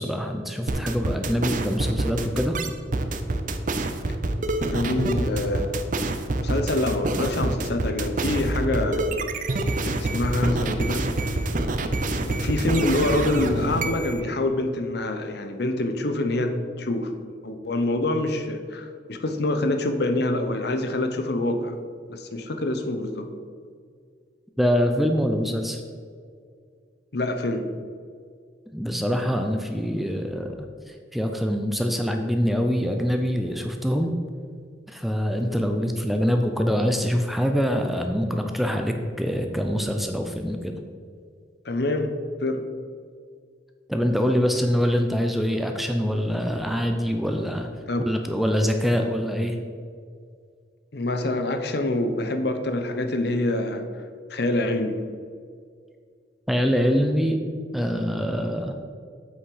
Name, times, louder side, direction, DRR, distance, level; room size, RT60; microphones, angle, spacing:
voice 1, 0.0-2.6 24.6-25.8 28.7-34.1 34.9-40.8 43.9-47.7 48.1-49.6 56.5-57.4 57.7-58.8, equal, ahead, 4 dB, 0.4 m, -24 dB
sound 1, 0.7-14.2, right 2 dB, 45° right, 0.6 m, -26 dB
voice 2, 4.7-5.8 6.4-9.0 9.8-11.0 12.1-17.1 17.4-21.7 22.1-23.3 27.1-27.6 41.6-42.1 42.4-42.6 47.9-48.1 50.9-53.8 54.3-55.0, left 2 dB, 55° left, 7 dB, 0.8 m, -26 dB
7.9 x 6.0 x 4.8 m, 2.1 s
head